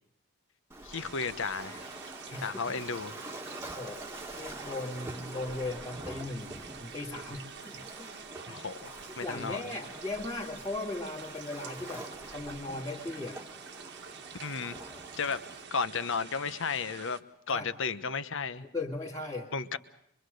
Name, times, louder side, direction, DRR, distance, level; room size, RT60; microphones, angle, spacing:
Waves surf, 0.7-15.6, right 1 dB, 10° right, 1.5 m, -46 dB
voice 1, 0.8-1.8 2.4-3.2 8.5-9.7 14.4-14.8 15.2-15.4 15.7-17.2 17.5-18.7 19.5-19.8, left 5 dB, 60° left, 12 dB, 1.1 m, -33 dB
sound 1, 0.9-17.2, right 6 dB, 55° right, 1.4 m, -47 dB
voice 2, 2.3-2.7 3.7-4.0 4.4-6.5 6.8-8.1 8.5-8.6 9.2-13.4 17.5-17.7 18.7-19.5, left 2 dB, 15° left, -5 dB, 2.1 m, -38 dB
24.5 x 24.0 x 6.5 m, 0.73 s
head